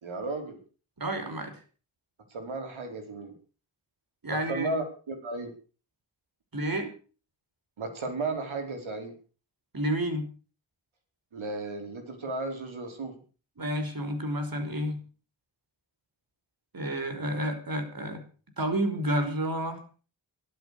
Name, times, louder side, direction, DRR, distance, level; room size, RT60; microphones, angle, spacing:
voice 1, 0.0-0.6 2.3-3.3 4.5-5.5 7.8-9.1 11.3-13.1, right 2 dB, 80° right, 5 dB, 4.9 m, -34 dB
voice 2, 1.0-1.5 4.2-4.7 6.5-6.9 9.7-10.2 13.6-15.0 16.7-18.2 18.6-19.8, right 1 dB, 45° right, 7 dB, 5.6 m, -30 dB
15.0 x 12.5 x 6.8 m, 0.38 s
cardioid pair, 50°, 47 cm